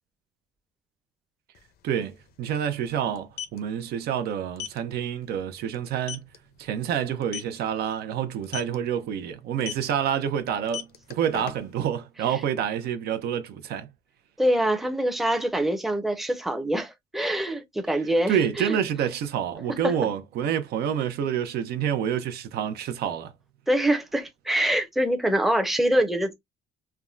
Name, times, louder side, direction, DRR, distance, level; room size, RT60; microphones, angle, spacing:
sound 1, 1.5-1.6 1.9-2.1 3.1-3.6 4.6-4.8 5.2-5.4 5.7-5.8 6.1-6.4 7.2-7.6 8.4-8.8 9.6-9.9 10.6-11.9, left 9 dB, 65° left, 0.6 m, -35 dB
voice 1, 1.8-6.2 6.6-13.9 18.3-23.3, right 9 dB, 70° right, 0.5 m, -28 dB
voice 2, 14.4-18.8 19.8-20.0 23.7-26.3, right 1 dB, ahead, 0.6 m, -24 dB
3.4 x 2.1 x 2.4 m
cardioid pair, 110°, 17 cm